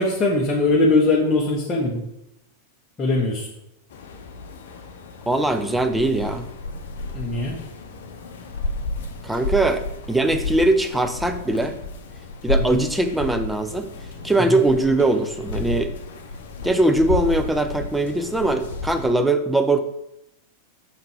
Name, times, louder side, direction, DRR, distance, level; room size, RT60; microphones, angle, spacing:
voice 1, 0.0-2.0 3.0-3.5 7.1-7.6 12.6-12.8 14.4-14.6, left 2 dB, 20° left, -3 dB, 1.0 m, -21 dB
sound 1, 3.9-19.1, left 2 dB, 60° left, 0.7 m, -32 dB
voice 2, 5.3-6.5 9.2-11.8 12.4-13.9 14.2-15.9 16.6-19.8, right 2 dB, 5° right, 7 dB, 0.6 m, -21 dB
5.9 x 3.9 x 4.2 m, 0.83 s
figure-of-eight pair, 90°, 0 cm